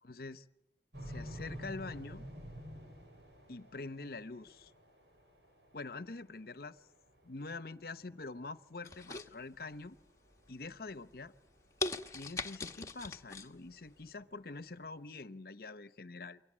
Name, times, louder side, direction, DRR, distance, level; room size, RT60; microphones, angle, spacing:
voice 1, 0.0-0.4 1.0-2.2 3.5-4.7 5.7-6.8 7.2-10.0 10.5-11.3 12.1-16.4, left 3 dB, 60° left, 14 dB, 1.0 m, -45 dB
sound 1, 0.9-15.1, equal, 85° right, 8.0 m, -51 dB
sound 2, 8.8-9.9 10.3-10.7 11.2-11.3 11.8-13.5 13.9-14.0, left 3 dB, 15° left, 1.2 m, -40 dB
29.0 x 23.5 x 7.5 m, 0.76 s
head